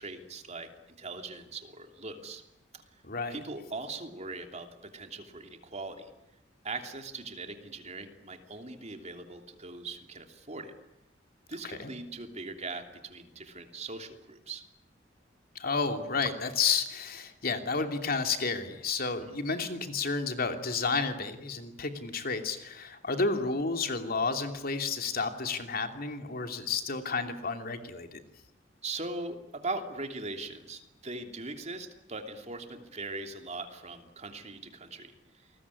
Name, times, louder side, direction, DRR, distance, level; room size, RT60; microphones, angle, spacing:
voice 1, 0.0-2.4 2.7-2.8 3.3-6.1 6.6-10.7 11.5-14.6 19.2-19.4 28.8-35.5, right 3 dB, 35° right, 5 dB, 3.0 m, -40 dB
voice 2, 3.0-3.4 11.6-11.9 15.5-28.2, left 4 dB, 50° left, 6 dB, 2.9 m, -31 dB
28.5 x 21.0 x 9.8 m, 0.88 s
head